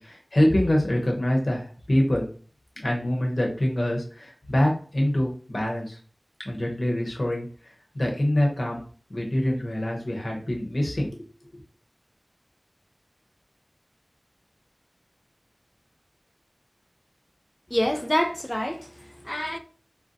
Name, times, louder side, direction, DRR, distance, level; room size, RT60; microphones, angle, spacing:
voice 1, 0.0-2.3 2.8-6.0 6.4-7.5 7.9-8.8 9.1-11.1, left 1 dB, 70° left, 0.8 m, -25 dB
voice 2, 17.7-19.6, equal, 15° left, 0.3 m, -27 dB
2.6 x 2.0 x 3.7 m
wide cardioid pair, 45°, 0 cm